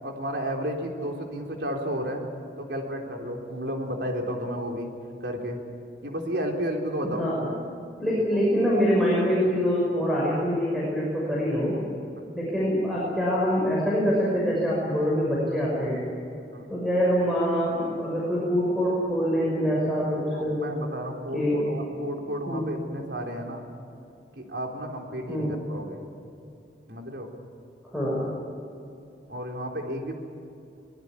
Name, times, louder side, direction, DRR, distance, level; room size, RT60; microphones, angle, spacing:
voice 1, 0.0-2.3 2.6-4.9 5.2-5.6 6.0-7.6 8.3-8.4 16.5-16.7 20.3-23.7 24.4-26.0 26.9-27.3 29.3-30.1, equal, 70° right, 1 dB, 3.8 m, -32 dB
voice 2, 7.0-7.4 8.0-11.8 12.4-16.0 16.7-20.6 21.3-21.6 22.5-22.7 25.3-25.5 27.9-28.3, equal, ahead, -6 dB, 6.0 m, -25 dB
23.0 x 20.5 x 9.9 m, 2.6 s
head